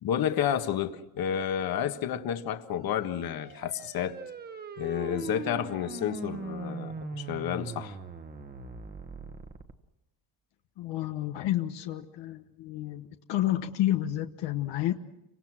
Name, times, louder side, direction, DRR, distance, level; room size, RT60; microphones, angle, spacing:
voice 1, 0.0-4.2 4.8-8.0, left 9 dB, 55° left, 1.5 m, -30 dB
sound 1, 2.8-9.7, right 4 dB, 20° right, 1.2 m, -40 dB
voice 2, 10.8-15.0, left 13 dB, 75° left, 1.2 m, -30 dB
30.0 x 25.0 x 6.2 m
cardioid pair, 150°, 44 cm